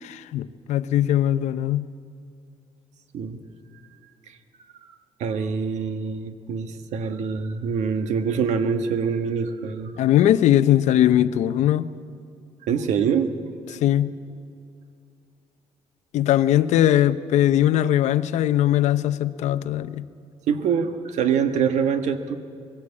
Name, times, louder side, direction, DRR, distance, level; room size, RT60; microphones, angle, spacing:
voice 1, 0.0-1.9 10.0-11.9 13.8-14.1 16.1-20.1, left 12 dB, 80° left, 0.7 m, -20 dB
voice 2, 5.2-10.0 12.6-13.3 20.5-22.4, right 6 dB, 80° right, 1.4 m, -25 dB
20.5 x 16.5 x 8.6 m
cardioid pair, 120°, 12 cm